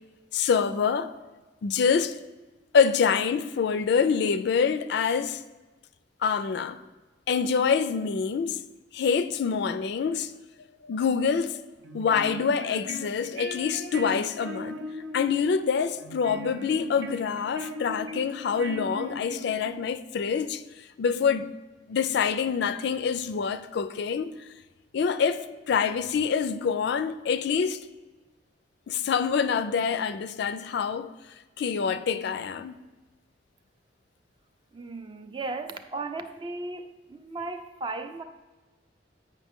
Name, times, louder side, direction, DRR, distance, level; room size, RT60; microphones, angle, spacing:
voice 1, 0.3-1.1 1.6-2.2 2.7-5.4 6.2-6.8 7.3-8.6 8.9-10.3 10.8-11.6 11.9-14.8 15.1-20.6 21.0-21.5 21.9-24.3 24.9-27.8 28.9-31.1 31.6-32.8, left 6 dB, 65° left, 0.3 m, -26 dB
sound 1, 11.8-19.9, equal, 90° right, 0.6 m, -39 dB
voice 2, 34.7-38.2, right 3 dB, 25° right, 0.4 m, -36 dB
8.2 x 5.3 x 3.6 m
head